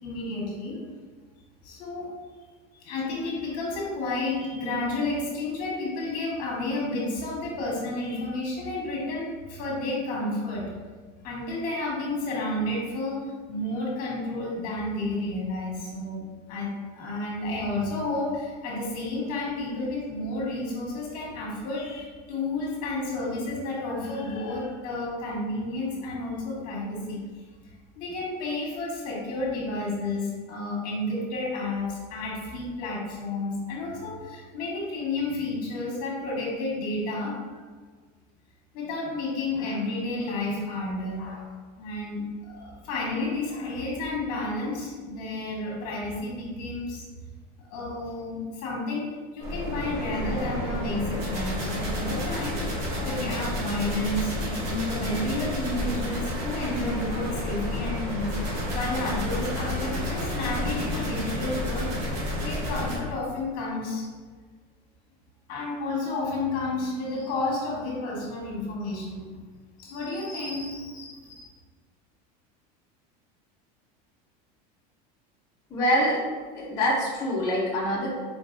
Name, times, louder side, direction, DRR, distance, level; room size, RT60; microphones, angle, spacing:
voice 1, 0.0-0.8 1.6-2.1 2.8-10.7 11.2-13.2 13.5-16.2 16.5-27.2 28.0-37.3 38.7-41.5 41.8-47.0 47.7-61.9 62.3-64.0 65.5-69.3 69.8-71.5, left 2 dB, 45° left, -3 dB, 1.4 m, -31 dB
sound 1, 49.4-63.0, left 1 dB, 75° right, 1.4 m, -30 dB
voice 2, 75.7-76.2 76.5-78.1, equal, 15° left, -10 dB, 0.7 m, -25 dB
4.6 x 4.3 x 2.6 m, 1.5 s
supercardioid pair, 170°, 21 cm